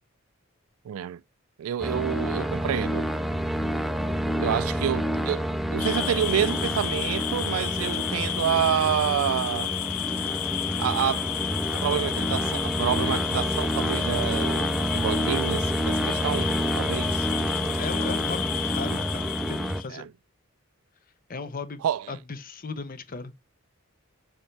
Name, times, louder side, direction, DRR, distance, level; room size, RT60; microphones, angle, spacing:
voice 1, 0.8-1.2 1.6-3.0 4.4-5.4 5.7-9.7 10.8-11.3 11.8-17.3 19.9-20.1 21.8-22.2, right 9 dB, 90° right, 0.3 m, -28 dB
sound 1, 1.8-19.8, equal, ahead, 0.4 m, -28 dB
sound 2, 5.8-19.9, left 12 dB, 85° left, 0.5 m, -32 dB
voice 2, 17.6-20.0 21.3-23.3, left 4 dB, 40° left, 0.7 m, -37 dB
7.0 x 4.3 x 3.3 m
head